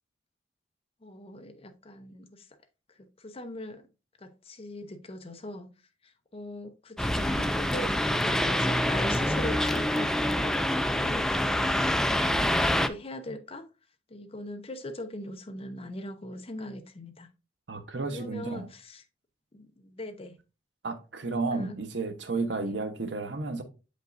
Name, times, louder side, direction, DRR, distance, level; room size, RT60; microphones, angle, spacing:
voice 1, 1.0-2.5 3.0-3.8 4.2-5.7 6.0-13.7 14.1-17.3 18.1-19.0 19.5-20.4 21.5-21.8 22.6-22.7, left 1 dB, 35° left, 0.7 m, -41 dB
sound 1, 7.0-12.9, left 1 dB, 5° left, 0.3 m, -26 dB
voice 2, 17.7-18.7 20.8-23.6, right 3 dB, 85° right, 1.0 m, -32 dB
7.9 x 5.2 x 2.6 m
head